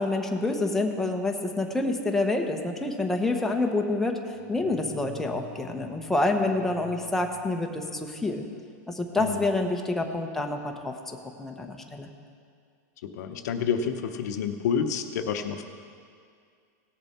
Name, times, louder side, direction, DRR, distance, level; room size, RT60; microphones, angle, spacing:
voice 1, 0.0-4.2 4.5-8.5 8.9-12.1, left 2 dB, 5° left, 2 dB, 0.9 m, -27 dB
sound 1, 4.3-8.4, left 6 dB, 15° right, 2.1 m, -48 dB
voice 2, 9.2-9.5 13.0-15.7, left 7 dB, 70° left, 7 dB, 0.9 m, -29 dB
17.5 x 6.9 x 4.3 m, 2.2 s
supercardioid pair, 140°, 10 cm